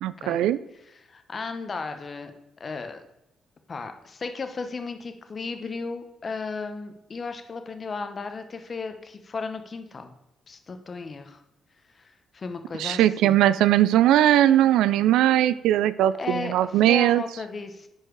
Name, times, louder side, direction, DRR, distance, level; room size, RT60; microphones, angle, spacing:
voice 1, 0.0-0.6 12.8-17.2, right 12 dB, 90° right, 16 dB, 0.3 m, -20 dB
voice 2, 0.7-2.3 2.6-3.0 3.7-10.1 10.5-11.4 11.9-13.4 16.2-17.9, left 4 dB, 40° left, 7 dB, 1.0 m, -35 dB
9.7 x 4.6 x 4.6 m, 0.87 s
cardioid pair, 90°, 0 cm